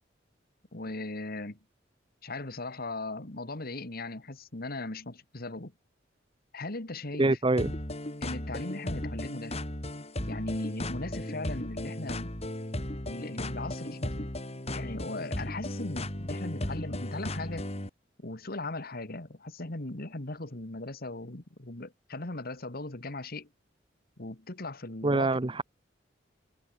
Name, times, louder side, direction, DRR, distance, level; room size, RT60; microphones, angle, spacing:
voice 1, 0.7-1.6 2.2-5.7 6.5-7.4 8.2-9.6 10.2-12.3 13.0-14.3 14.7-17.7 18.2-23.5 24.2-25.4, left 2 dB, 55° left, 2.1 m, -38 dB
voice 2, 7.2-7.7 25.0-25.6, right 2 dB, 25° right, 0.8 m, -25 dB
sound 1, 7.6-17.9, left 1 dB, 35° left, 3.3 m, -36 dB
head